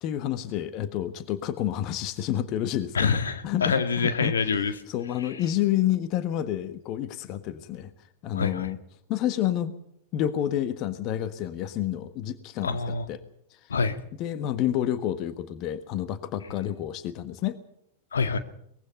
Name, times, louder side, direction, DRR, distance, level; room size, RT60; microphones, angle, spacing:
voice 1, 0.0-3.1 3.4-4.3 4.9-7.9 8.2-8.8 9.1-9.7 10.1-12.8 13.1-13.2 13.5-13.7 14.2-17.6, left 11 dB, 40° left, 12 dB, 1.5 m, -29 dB
voice 2, 2.9-4.7 5.2-5.3 8.3-8.7 12.6-13.0 13.7-14.0 18.1-18.4, left 5 dB, 70° left, 9 dB, 1.8 m, -26 dB
23.0 x 21.0 x 5.5 m, 0.72 s
figure-of-eight pair, 90°, 0 cm